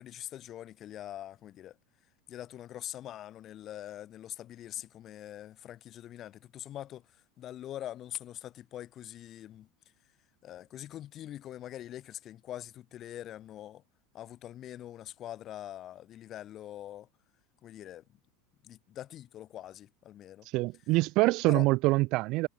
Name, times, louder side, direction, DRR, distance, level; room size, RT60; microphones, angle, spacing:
voice 1, 0.0-1.8 2.3-9.7 10.4-13.8 14.1-17.1 17.6-18.2 18.6-20.5 21.5-21.7, left 12 dB, 40° left, 4.7 m, -43 dB
voice 2, 20.5-22.5, right 21 dB, 55° right, 0.4 m, -25 dB
supercardioid pair, 120°, 0 cm